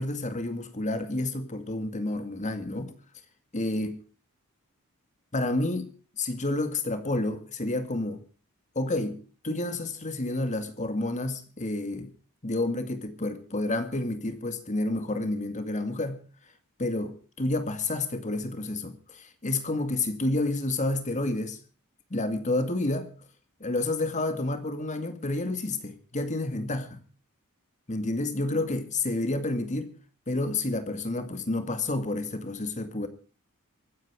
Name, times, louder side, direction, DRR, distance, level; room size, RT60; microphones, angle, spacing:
voice 1, 0.0-2.9 3.5-4.0 5.3-5.9 6.2-8.2 8.8-12.1 12.4-16.2 16.8-21.6 22.1-23.1 23.6-27.0 27.9-29.9 30.3-33.1, left 2 dB, 35° left, 2.1 m, -30 dB
24.5 x 9.4 x 4.7 m
head